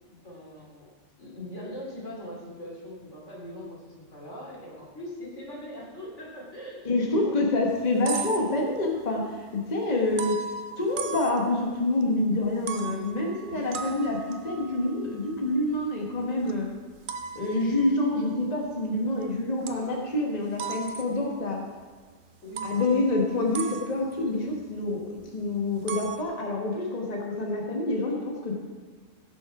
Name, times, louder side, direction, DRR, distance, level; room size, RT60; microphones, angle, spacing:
voice 1, 0.1-0.9 1.2-7.6 13.5-13.8 22.4-22.8, equal, 85° left, -3 dB, 3.1 m, -41 dB
voice 2, 6.8-10.4 10.8-16.7 17.3-21.6 22.6-28.6, left 2 dB, 35° left, -1 dB, 1.5 m, -27 dB
sound 1, 7.7-9.0 10.2-12.0 12.4-19.2 19.7-20.2 20.6-21.6 22.0-22.1 22.6-25.3 25.6-26.2, right 6 dB, 55° right, 0.7 m, -38 dB
16.0 x 6.2 x 4.8 m, 1.5 s
omnidirectional pair, 1.2 m